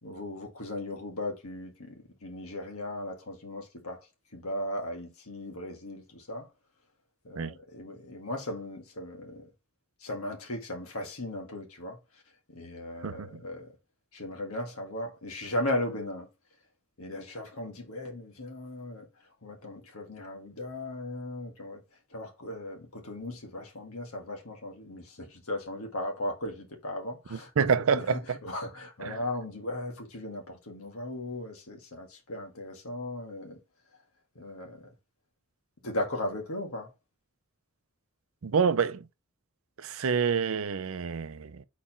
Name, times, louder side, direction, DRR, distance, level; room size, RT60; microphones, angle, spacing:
voice 1, 0.0-2.0 2.2-4.0 4.3-6.5 7.2-9.5 10.0-12.0 12.5-13.7 14.1-16.3 17.0-19.1 19.4-21.8 22.1-27.7 27.9-33.6 34.4-34.9 35.8-36.9, left 1 dB, 80° left, 1.9 m, -37 dB
voice 2, 13.0-13.4 27.3-28.4 29.0-29.2 38.4-39.1 39.8-41.6, right 6 dB, 75° right, 0.5 m, -28 dB
4.5 x 4.1 x 5.5 m
head